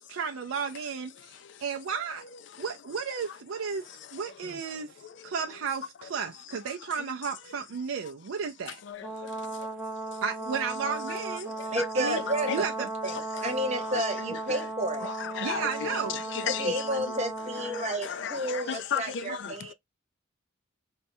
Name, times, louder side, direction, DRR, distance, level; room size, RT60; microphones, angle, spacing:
voice 1, 0.0-2.2 2.6-8.8 10.2-12.2 12.5-12.9 15.4-16.2, right 6 dB, 85° right, 0.4 m, -34 dB
Brass instrument, 9.0-18.0, right 2 dB, 5° right, 0.7 m, -36 dB
voice 2, 11.7-15.1 16.5-19.7, right 1 dB, 35° right, 0.9 m, -31 dB
voice 3, 15.0-16.0 16.3-16.7 17.7-19.7, left 8 dB, 60° left, 0.4 m, -34 dB
4.3 x 2.3 x 2.6 m
head